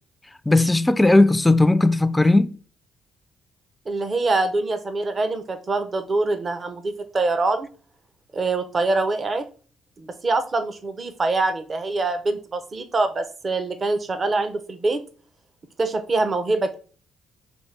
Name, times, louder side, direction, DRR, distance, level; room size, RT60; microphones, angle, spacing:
voice 1, 0.5-2.5, left 2 dB, 10° left, 0.3 m, -17 dB
voice 2, 3.9-7.7 8.3-9.4 10.0-15.0 15.8-16.7, right 3 dB, 35° right, 0.7 m, -24 dB
5.3 x 2.6 x 3.3 m
cardioid pair, 90°, 0 cm